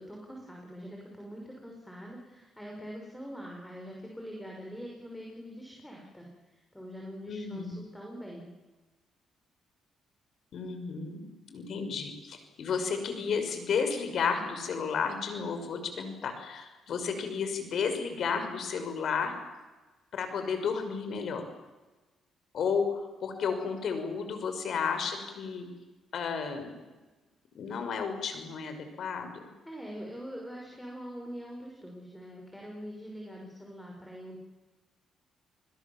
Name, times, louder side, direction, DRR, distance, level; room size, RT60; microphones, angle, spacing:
voice 1, 0.0-8.5 29.6-34.4, equal, 5° left, -1 dB, 5.9 m, -44 dB
voice 2, 7.3-7.7 10.5-19.3 20.1-21.5 22.5-25.7 26.1-26.7 27.5-29.5, left 6 dB, 65° left, 7 dB, 5.7 m, -32 dB
29.0 x 21.0 x 7.3 m, 1.2 s
cardioid pair, 90°, 0 cm